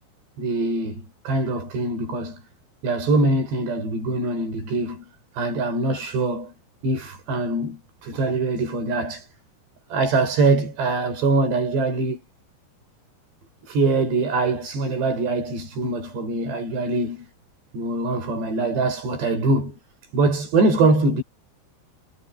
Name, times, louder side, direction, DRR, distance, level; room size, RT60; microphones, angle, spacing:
voice 1, 0.4-2.4 2.8-5.1 5.3-6.5 6.8-9.3 9.9-12.2 13.7-17.3 17.7-19.8 20.1-21.2, right 3 dB, 80° right, 8.4 m, -23 dB
omnidirectional pair, 4.8 m